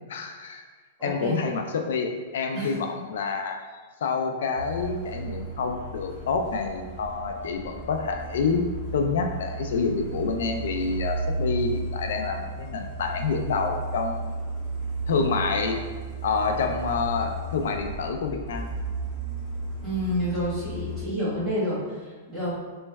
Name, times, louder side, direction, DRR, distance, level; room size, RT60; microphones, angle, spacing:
voice 1, 0.1-0.6 1.0-3.6 4.0-8.7 8.9-14.3 15.1-15.8 16.2-18.7, left 4 dB, 75° left, 4 dB, 0.3 m, -27 dB
voice 2, 1.0-1.4 2.5-2.8 19.8-22.5, equal, 5° right, -12 dB, 1.2 m, -29 dB
Truck, 4.6-21.0, right 2 dB, 10° left, 1.5 m, -34 dB
4.3 x 3.0 x 2.2 m, 1.5 s
supercardioid pair, 170°, 0 cm